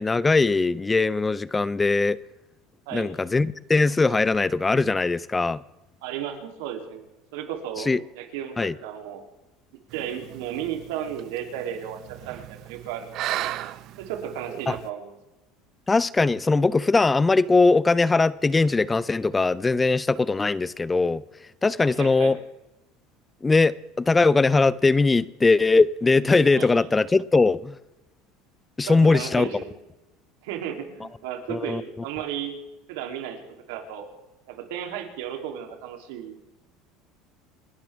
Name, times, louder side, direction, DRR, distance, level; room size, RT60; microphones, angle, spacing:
voice 1, 0.0-2.2 2.9-5.6 7.9-8.0 8.6-8.7 14.7-14.8 15.9-21.2 21.6-22.4 23.4-27.8 28.8-29.5 31.5-31.8, left 3 dB, 15° left, 0.4 m, -20 dB
voice 2, 6.0-7.0 7.3-9.2 9.9-13.3 14.0-15.1 21.8-22.4 26.5-26.7 28.9-29.7 30.4-32.6 32.9-33.4 33.7-34.1 34.5-36.4, right 9 dB, 85° right, 3.1 m, -34 dB
sound 1, 9.9-14.9, right 13 dB, 50° right, 0.6 m, -36 dB
29.5 x 12.0 x 3.5 m
supercardioid pair, 140°, 0 cm